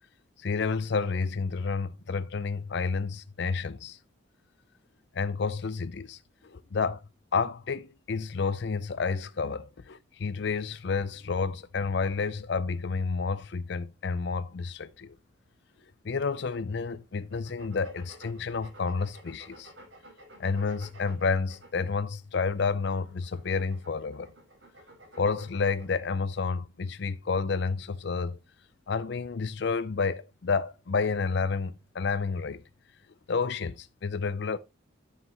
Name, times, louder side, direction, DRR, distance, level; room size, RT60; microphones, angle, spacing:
voice 1, 0.4-4.0 5.1-7.0 7.3-15.1 16.0-19.7 20.4-24.3 25.2-28.4 28.9-32.6 33.3-34.6, left 4 dB, 60° left, 0.5 m, -30 dB
sound 1, 17.3-22.2 22.8-25.9, right 1 dB, 70° right, 5.5 m, -52 dB
9.7 x 7.4 x 3.0 m
head